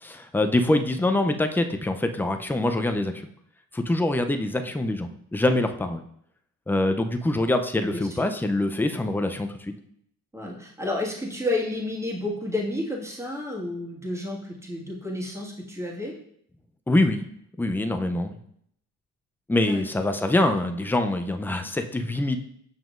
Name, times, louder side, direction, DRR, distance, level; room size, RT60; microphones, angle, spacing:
voice 1, 0.0-3.3 3.7-6.0 6.7-9.7 16.9-17.2 17.6-18.4 19.5-22.4, left 1 dB, 5° left, 6 dB, 0.5 m, -24 dB
voice 2, 7.7-8.3 10.3-16.1 19.7-19.8, left 1 dB, 10° right, -2 dB, 1.7 m, -31 dB
7.1 x 5.8 x 2.5 m, 0.69 s
cardioid pair, 90°, 30 cm